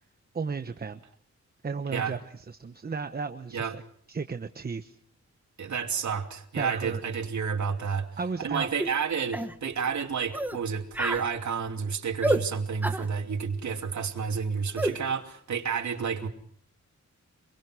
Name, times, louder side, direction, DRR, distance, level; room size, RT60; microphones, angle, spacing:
voice 1, 0.3-1.0 1.6-3.8 4.1-5.0 6.6-7.0 8.2-8.7, right 5 dB, 30° right, 8 dB, 1.1 m, -34 dB
voice 2, 5.6-16.3, right 6 dB, 70° right, 3 dB, 2.8 m, -30 dB
sound 1, 8.8-8.9 9.3-9.5 10.3-10.6 10.9-11.3 12.2-12.4 12.8-13.1 14.8-15.0, right 1 dB, 5° right, 1.4 m, -28 dB
26.0 x 22.5 x 6.2 m, 0.63 s
wide cardioid pair, 140°, 30 cm